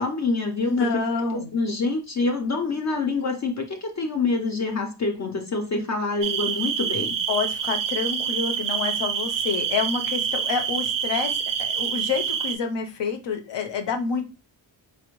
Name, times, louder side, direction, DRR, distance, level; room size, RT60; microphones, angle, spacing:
voice 1, 0.0-7.2, left 3 dB, 40° left, 3 dB, 0.5 m, -26 dB
voice 2, 0.6-1.5 7.3-14.3, left 5 dB, 75° left, 6 dB, 0.7 m, -28 dB
sound 1, 6.2-12.6, right 7 dB, 50° right, 0.4 m, -27 dB
4.1 x 2.1 x 3.0 m, 0.31 s
wide cardioid pair, 155°, 43 cm